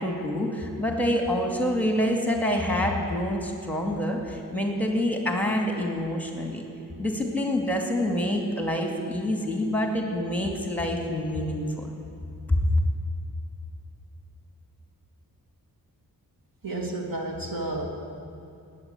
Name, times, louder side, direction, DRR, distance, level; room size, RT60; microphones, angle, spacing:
voice 1, 0.0-6.6 7.0-11.9 12.6-12.7, left 1 dB, 5° left, 1 dB, 2.3 m, -27 dB
voice 2, 16.6-17.9, right 2 dB, 55° right, 1 dB, 2.7 m, -31 dB
19.0 x 8.9 x 8.3 m, 2.7 s
cardioid pair, 85°, 40 cm